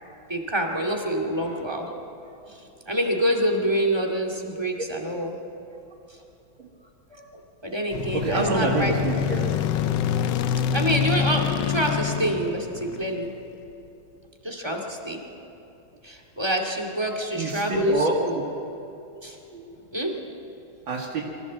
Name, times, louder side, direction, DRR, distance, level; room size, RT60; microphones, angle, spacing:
voice 1, 0.0-1.9 2.2-5.3 6.1-6.2 7.1-8.9 10.7-13.3 14.4-15.2 16.0-18.0 18.2-18.3 19.2-19.4 19.9-20.2, right 1 dB, 15° right, 2 dB, 2.1 m, -27 dB
sound 1, 7.9-13.4, left 8 dB, 70° left, 1.3 m, -26 dB
voice 2, 8.1-9.6 13.8-13.9 17.3-18.4 19.5-19.6 20.9-21.2, right 2 dB, 80° right, -3 dB, 3.1 m, -26 dB
24.0 x 15.5 x 7.5 m, 2.9 s
omnidirectional pair, 2.1 m